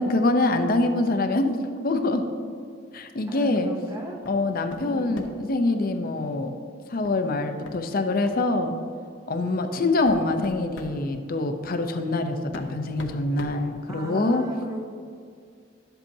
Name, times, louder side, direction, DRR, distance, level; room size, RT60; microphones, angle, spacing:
voice 1, 0.0-1.6 1.8-2.2 2.9-3.7 4.3-6.5 6.9-8.8 9.3-14.4, left 2 dB, 50° left, 6 dB, 0.6 m, -25 dB
voice 2, 3.3-4.2 4.7-5.2 9.4-9.8 13.9-14.8, right 2 dB, 20° right, 0 dB, 0.7 m, -36 dB
sound 1, 4.2-4.4 4.7-5.5 7.0-7.2 7.6-7.8 8.2-8.4 9.3-9.4 9.8-11.0 12.0-12.1 12.5-14.3, left 1 dB, 85° left, 0.9 m, -42 dB
11.5 x 8.0 x 2.7 m, 2.2 s
head